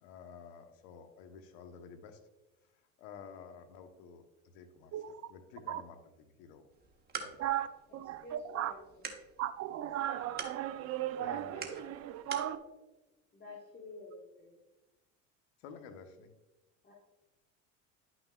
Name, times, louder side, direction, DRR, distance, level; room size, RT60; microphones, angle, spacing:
voice 1, 0.0-2.2 3.0-4.2 4.5-4.9 5.3-6.7 7.2-7.3 11.2-11.7 15.6-16.3, left 6 dB, 70° left, 1.1 m, -51 dB
voice 2, 4.9-5.3 5.7-5.8 7.4-7.7 7.9-8.7 9.4-12.6, right 12 dB, 40° right, 0.6 m, -36 dB
sound 1, 6.7-12.6, right 5 dB, 25° right, 1.2 m, -47 dB
voice 3, 8.2-8.8 13.3-14.6 16.8-16.9, left 2 dB, 25° left, 1.5 m, -50 dB
10.5 x 6.0 x 2.4 m
supercardioid pair, 100°, 39 cm